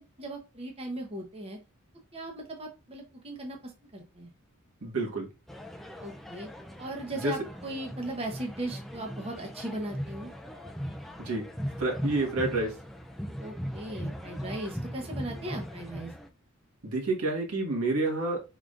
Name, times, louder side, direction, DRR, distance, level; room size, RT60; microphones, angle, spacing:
voice 1, 0.0-1.6 2.1-4.3 6.0-6.5 6.8-10.3 13.4-16.1, right 1 dB, 25° right, 1 dB, 0.9 m, -38 dB
voice 2, 4.8-5.3 7.2-7.3 11.2-11.4 11.8-12.7 16.8-18.4, right 2 dB, 85° right, 0 dB, 1.6 m, -28 dB
sound 1, 5.5-16.3, equal, ahead, 0.3 m, -39 dB
5.1 x 3.7 x 2.5 m, 0.27 s
head